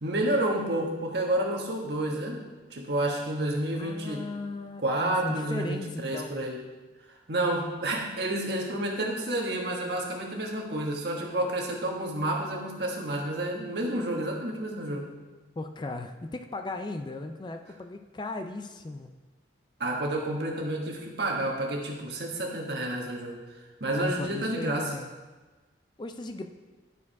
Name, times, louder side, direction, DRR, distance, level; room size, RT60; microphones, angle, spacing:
voice 1, 0.0-2.4 2.7-4.2 4.8-6.6 7.3-15.1 19.8-23.4 23.8-24.9, right 1 dB, 60° right, 0 dB, 1.4 m, -30 dB
voice 2, 3.7-6.4 15.6-19.1 23.9-25.1 26.0-26.5, left 2 dB, 25° left, 7 dB, 0.4 m, -36 dB
11.0 x 4.8 x 4.7 m, 1.2 s
head